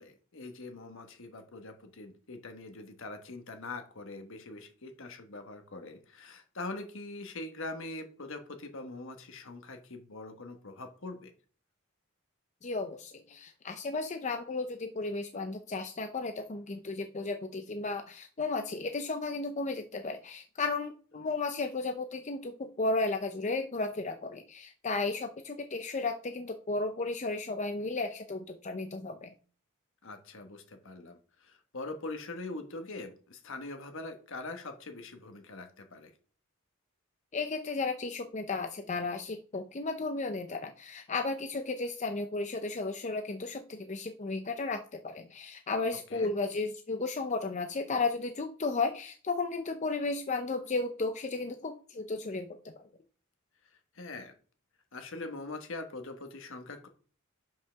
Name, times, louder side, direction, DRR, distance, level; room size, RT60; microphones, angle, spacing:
voice 1, 0.0-11.3 30.0-36.1 45.9-46.3 53.6-54.3 54.9-56.9, left 2 dB, 65° left, 6 dB, 1.3 m, -43 dB
voice 2, 12.6-29.3 37.3-52.5, left 3 dB, 35° left, 6 dB, 0.5 m, -34 dB
5.7 x 5.5 x 5.7 m, 0.42 s
head